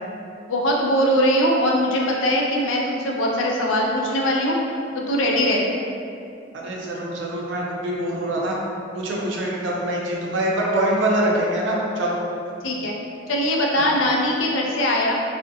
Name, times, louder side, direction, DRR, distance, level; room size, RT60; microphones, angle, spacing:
voice 1, 0.5-5.6 12.6-12.9 13.3-15.1, equal, 85° left, -1 dB, 0.4 m, -21 dB
voice 2, 6.5-8.6 8.9-12.2 13.8-14.0, right 1 dB, 75° right, -3 dB, 0.5 m, -24 dB
2.5 x 2.0 x 2.5 m, 2.5 s
head